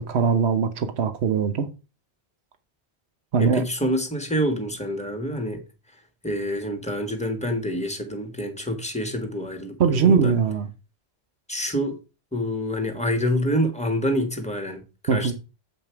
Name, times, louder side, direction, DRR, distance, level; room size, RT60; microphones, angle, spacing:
voice 1, 0.0-1.7 3.3-3.6 9.8-10.7 15.1-15.3, right 6 dB, 75° right, 1.2 m, -21 dB
voice 2, 3.4-5.6 6.2-10.4 11.5-12.0 12.3-15.3, equal, 5° left, 1.5 m, -27 dB
7.7 x 5.4 x 4.6 m
omnidirectional pair, 1.1 m